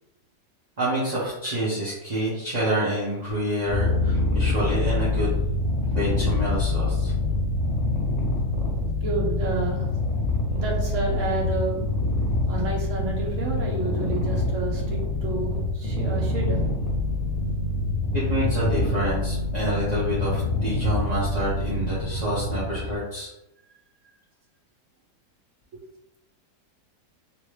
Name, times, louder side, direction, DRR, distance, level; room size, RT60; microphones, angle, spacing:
voice 1, 0.8-5.3 5.9-7.1 18.1-23.3, right 1 dB, 30° right, -9 dB, 1.0 m, -27 dB
Purr, 3.6-23.0, left 2 dB, 35° left, 0.6 m, -25 dB
voice 2, 9.0-9.8 10.5-11.8 12.5-16.6, right 3 dB, 55° right, -2 dB, 1.2 m, -30 dB
3.0 x 2.9 x 3.2 m, 0.88 s
omnidirectional pair, 1.7 m